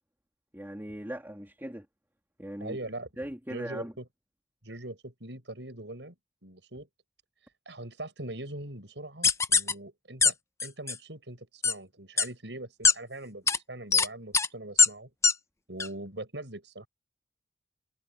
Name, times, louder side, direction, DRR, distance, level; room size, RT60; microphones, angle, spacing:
voice 1, 0.5-1.9 2.4-2.8 3.2-3.9, right 1 dB, 15° right, 2.5 m, -39 dB
voice 2, 2.6-3.1 3.5-4.0 4.6-6.1 6.4-6.9 7.6-10.3 10.6-15.1 15.7-16.9, right 1 dB, 85° right, 6.5 m, -41 dB
sound 1, 9.2-9.7 10.2-10.3 10.6-10.9 11.6-11.7 12.2-12.3 12.8-12.9 13.5-13.6 13.9-14.1 14.3-14.5 14.8-14.9 15.2-15.3 15.8-15.9, left 5 dB, 15° left, 0.7 m, -21 dB
head